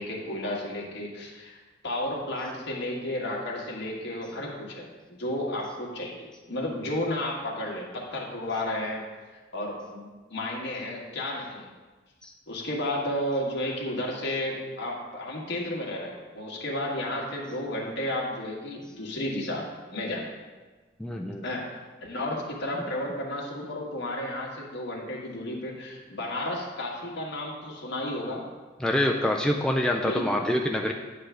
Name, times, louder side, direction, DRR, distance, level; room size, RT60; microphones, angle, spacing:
voice 1, 0.0-1.6 1.8-4.9 5.2-9.0 9.5-11.7 12.5-19.6 19.9-20.3 21.4-21.7 22.0-28.4 30.0-30.3, left 1 dB, 60° left, -2 dB, 1.6 m, -32 dB
voice 2, 21.0-21.4 28.8-30.9, left 1 dB, 5° left, 0 dB, 0.4 m, -26 dB
9.8 x 3.4 x 6.2 m, 1.3 s
head